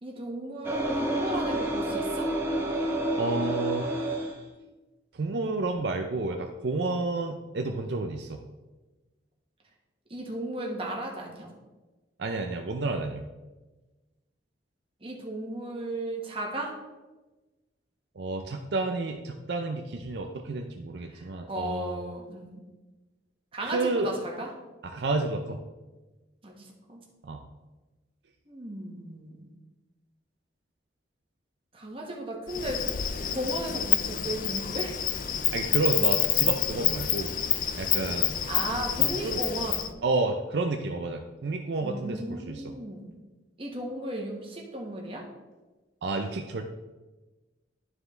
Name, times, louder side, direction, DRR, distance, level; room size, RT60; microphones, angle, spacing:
voice 1, 0.0-2.3 10.1-11.5 15.0-16.8 21.1-22.6 23.5-24.5 26.4-27.0 28.5-29.5 31.7-32.8 33.3-35.1 38.5-39.8 41.8-43.1 43.6-45.2, right 1 dB, 30° right, -1 dB, 1.4 m, -35 dB
sound 1, 0.6-4.4, right 1 dB, 15° right, 0.8 m, -29 dB
voice 2, 3.2-4.0 5.1-8.4 12.2-13.3 18.2-22.0 23.6-24.1 24.8-25.6 27.2-27.4 35.5-37.3 37.8-38.4 39.0-39.4 40.0-42.7 46.0-46.7, right 3 dB, 65° right, 4 dB, 0.5 m, -30 dB
Insect, 32.5-39.9, left 10 dB, 45° left, 0.4 m, -28 dB
11.5 x 4.7 x 3.2 m, 1.2 s
head